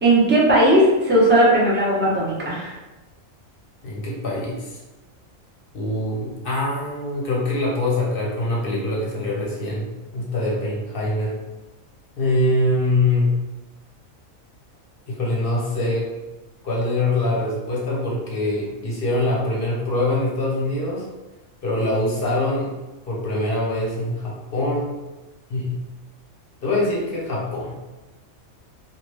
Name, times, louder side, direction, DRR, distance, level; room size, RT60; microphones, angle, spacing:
voice 1, 0.0-2.7, right 1 dB, 10° right, -6 dB, 0.6 m, -17 dB
voice 2, 3.8-4.8 5.7-11.3 12.2-13.3 15.1-16.1 16.6-21.1 21.6-22.7 23.1-24.9 25.5-25.7 26.6-27.7, left 2 dB, 50° left, -4 dB, 0.9 m, -24 dB
3.1 x 2.4 x 3.2 m, 1.1 s
omnidirectional pair, 1.4 m